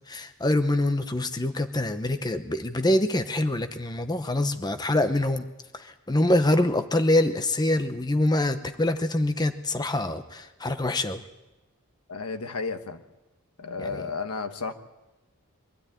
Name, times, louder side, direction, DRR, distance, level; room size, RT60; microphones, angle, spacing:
voice 1, 0.1-5.5 5.7-11.2 13.8-14.0, left 1 dB, 20° left, 8 dB, 0.8 m, -25 dB
voice 2, 12.1-13.0 13.6-14.7, left 4 dB, 90° left, 8 dB, 1.4 m, -32 dB
23.0 x 13.0 x 9.1 m, 1.1 s
head